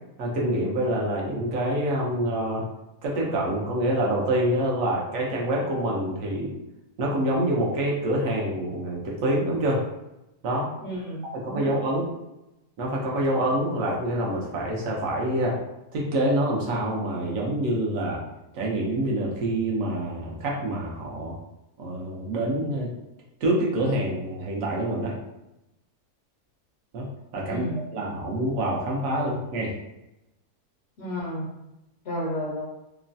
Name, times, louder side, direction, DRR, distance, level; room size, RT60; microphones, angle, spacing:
voice 1, 0.2-2.7 3.0-6.5 7.0-9.8 10.4-10.7 11.3-12.1 12.8-15.6 15.9-18.2 18.5-21.3 21.8-22.9 23.4-25.1 26.9-27.1 27.3-27.6 27.9-29.7, right 1 dB, 65° right, -3 dB, 1.0 m, -26 dB
voice 2, 10.8-11.7 27.5-27.8 31.0-31.5 32.0-32.6, equal, 65° left, -4 dB, 0.6 m, -32 dB
3.1 x 2.1 x 2.6 m, 0.92 s
omnidirectional pair, 1.7 m